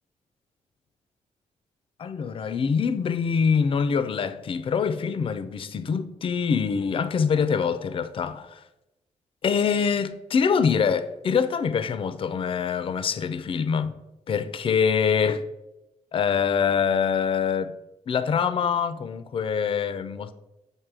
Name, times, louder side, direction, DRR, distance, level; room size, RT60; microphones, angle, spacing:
voice 1, 2.0-8.6 9.4-13.9 14.3-15.4 16.1-17.7 18.1-20.3, left 6 dB, 45° left, 0.4 m, -24 dB
7.4 x 2.7 x 4.7 m
cardioid pair, 85°, 13 cm